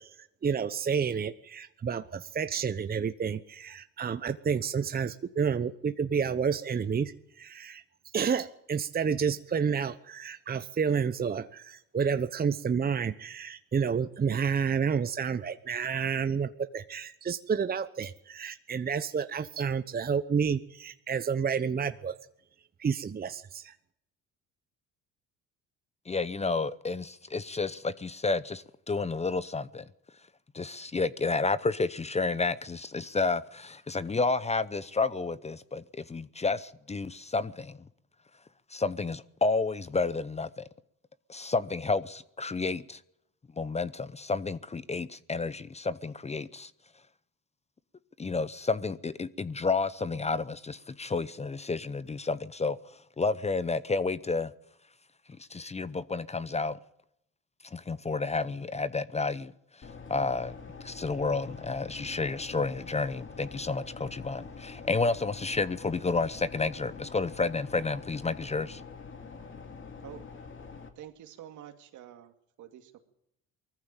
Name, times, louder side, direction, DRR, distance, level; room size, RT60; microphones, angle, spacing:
voice 1, 0.0-7.1 7.4-7.8 8.1-22.1 22.8-23.7, right 6 dB, 30° right, 0.9 m, -30 dB
voice 2, 26.1-29.8 30.5-37.8 38.7-40.6 41.3-43.0 43.6-46.7 48.2-52.8 53.2-54.5 55.5-56.8 57.7-59.5 60.1-60.5 60.8-68.8, left 3 dB, 20° left, 0.8 m, -31 dB
sound 1, 59.8-70.9, left 5 dB, 40° left, 2.7 m, -45 dB
voice 3, 70.0-70.3 71.0-73.1, right 11 dB, 70° right, 2.5 m, -48 dB
20.0 x 14.5 x 8.9 m
supercardioid pair, 75°, 31 cm